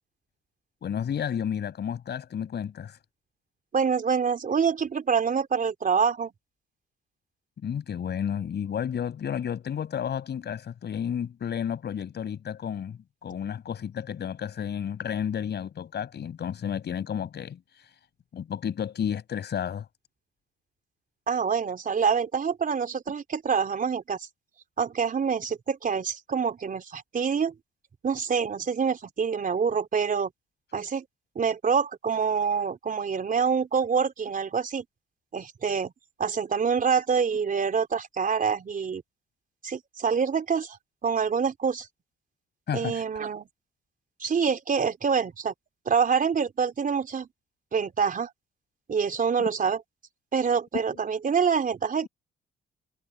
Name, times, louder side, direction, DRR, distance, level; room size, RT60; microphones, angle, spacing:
voice 1, 0.8-3.0 7.6-17.6 18.3-19.9 42.7-43.0 49.4-49.5 50.9-51.0, left 8 dB, 60° left, 5.4 m, -32 dB
voice 2, 3.7-6.3 21.3-24.2 24.8-27.5 28.0-30.3 30.7-31.0 31.4-34.8 35.3-35.9 36.2-39.0 39.6-40.8 41.0-41.9 42.7-43.5 44.2-45.5 45.9-47.3 47.7-48.3 48.9-49.8 50.3-52.1, right 6 dB, 45° right, 4.1 m, -26 dB
cardioid pair, 90°, 20 cm